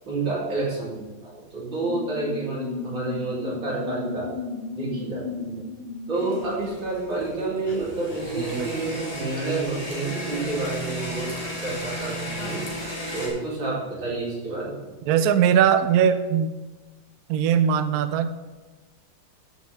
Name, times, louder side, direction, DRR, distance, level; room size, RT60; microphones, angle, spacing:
voice 1, 0.1-4.3 4.8-5.6 6.1-11.3 11.6-12.6 13.1-14.7, right 3 dB, 60° right, -7 dB, 3.9 m, -29 dB
sound 1, 1.8-6.6 7.6-7.8 8.1-8.2 8.5-8.6 8.9-9.0 12.4-12.9, left 4 dB, 70° left, 2.3 m, -35 dB
sound 2, 6.1-13.3, equal, 15° left, 2.2 m, -34 dB
voice 2, 8.4-8.7 15.1-16.5 17.3-18.3, right 8 dB, 90° right, 11 dB, 0.8 m, -20 dB
13.5 x 6.3 x 3.4 m, 1.2 s
omnidirectional pair, 2.3 m